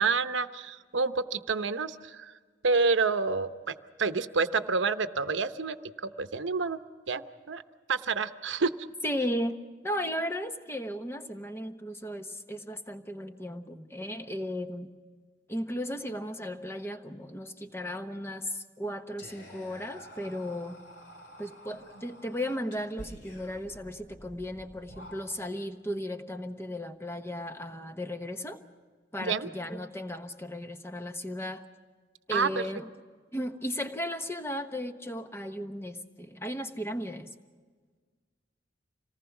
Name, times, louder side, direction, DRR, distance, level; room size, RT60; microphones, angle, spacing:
voice 1, 0.0-2.3 2.6-3.7 4.0-5.8 6.0-6.8 7.1-7.6 7.9-8.7 29.2-29.5 32.3-32.6, right 4 dB, 85° right, 11 dB, 0.9 m, -28 dB
voice 2, 9.0-9.6 9.8-14.9 15.5-20.8 21.4-28.6 29.1-31.6 32.3-32.9 33.3-37.3, equal, 15° left, 7 dB, 1.1 m, -35 dB
Whispering, 19.2-25.6, equal, 65° left, 4.5 m, -49 dB
26.5 x 19.0 x 6.0 m, 1.5 s
head